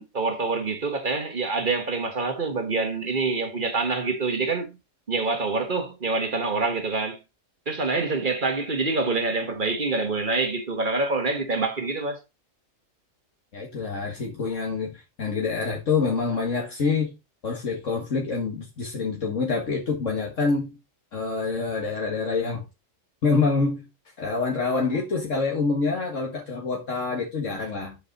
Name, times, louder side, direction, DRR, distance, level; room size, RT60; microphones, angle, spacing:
voice 1, 0.0-4.8 5.1-7.2 7.7-12.2, right 3 dB, 40° right, 1.4 m, -26 dB
voice 2, 13.5-17.1 17.4-20.8 21.1-22.6 23.2-23.9 24.2-28.0, left 4 dB, 70° left, 2.1 m, -26 dB
8.2 x 5.9 x 4.1 m
omnidirectional pair, 1.4 m